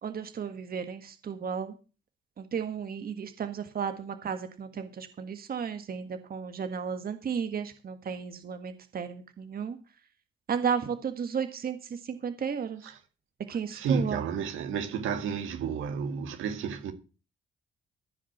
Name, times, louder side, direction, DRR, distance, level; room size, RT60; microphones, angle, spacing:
voice 1, 0.0-1.7 2.4-9.8 10.5-11.8 12.1-12.8 13.5-14.2, right 7 dB, 50° right, 1.7 m, -33 dB
voice 2, 13.5-16.9, right 6 dB, 85° right, 2.2 m, -32 dB
15.0 x 5.0 x 7.9 m
cardioid pair, 90°, 20 cm